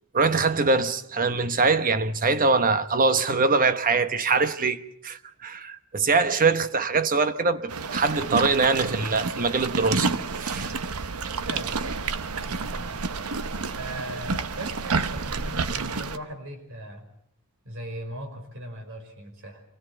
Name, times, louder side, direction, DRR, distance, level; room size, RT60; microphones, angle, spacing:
voice 1, 0.1-10.7, right 4 dB, 40° right, 1.0 m, -23 dB
sound 1, 7.7-16.2, right 4 dB, 80° right, 1.0 m, -29 dB
voice 2, 11.5-12.0 12.5-13.0 13.7-17.1 17.6-19.6, right 1 dB, 60° right, 5.1 m, -38 dB
25.5 x 17.0 x 7.9 m
head